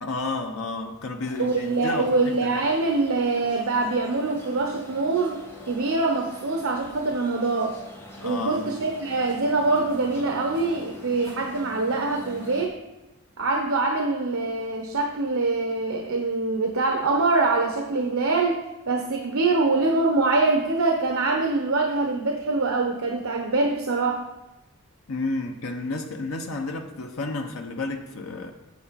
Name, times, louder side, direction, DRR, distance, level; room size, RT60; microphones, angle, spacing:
voice 1, 0.0-2.5 8.2-8.7 25.1-28.5, left 3 dB, 85° left, 0.8 m, -31 dB
sound 1, 1.2-12.7, left 1 dB, 10° left, 1.1 m, -45 dB
voice 2, 1.4-7.7 8.2-12.7 13.4-18.6 18.9-24.2, right 3 dB, 85° right, 0.9 m, -24 dB
8.4 x 7.8 x 4.1 m
head